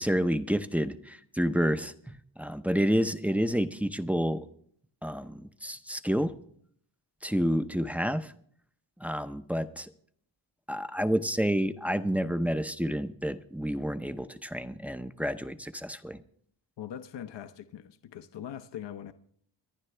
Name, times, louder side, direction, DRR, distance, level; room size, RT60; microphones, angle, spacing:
voice 1, 0.0-4.5 5.0-6.3 7.2-8.3 9.0-9.9 10.7-16.2, equal, 5° right, 0.6 m, -29 dB
voice 2, 16.8-19.1, left 10 dB, 70° left, 0.8 m, -41 dB
25.0 x 11.0 x 3.3 m
wide cardioid pair, 115°, 44 cm